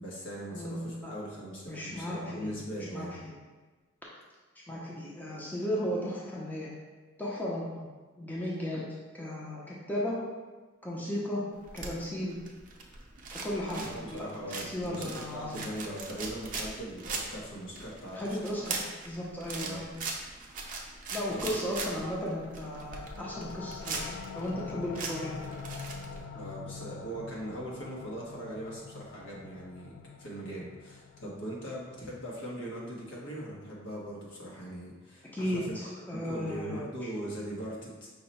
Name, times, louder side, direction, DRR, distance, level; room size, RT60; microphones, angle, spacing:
voice 1, 0.0-3.2 13.8-18.4 19.6-19.8 21.3-21.6 21.9-22.0 26.3-35.8 36.1-38.1, right 1 dB, 65° left, -4 dB, 1.1 m, -40 dB
voice 2, 0.5-1.1 1.7-3.1 4.7-6.7 7.2-7.9 8.2-8.8 9.1-10.2 10.8-11.4 11.7-12.4 13.3-15.7 18.1-18.8 19.1-19.9 21.1-25.6 35.3-36.9, left 1 dB, 10° left, -5 dB, 0.6 m, -35 dB
sound 1, 11.6-26.2, right 4 dB, 45° right, 0.6 m, -40 dB
sound 2, 22.8-34.1, left 5 dB, 85° left, 0.3 m, -46 dB
5.6 x 2.1 x 4.1 m, 1.3 s
head